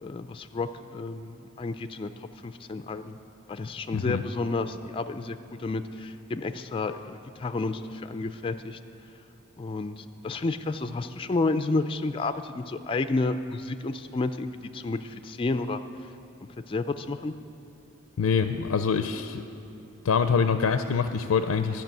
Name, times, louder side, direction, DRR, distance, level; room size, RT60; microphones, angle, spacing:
voice 1, 0.0-2.1 2.4-3.2 3.5-8.8 9.6-15.8 16.7-17.3, left 3 dB, 25° left, 9 dB, 0.3 m, -31 dB
voice 2, 3.9-4.2 18.2-19.4 20.0-21.8, left 6 dB, 90° left, 9 dB, 0.4 m, -25 dB
12.0 x 6.0 x 8.9 m, 2.9 s
head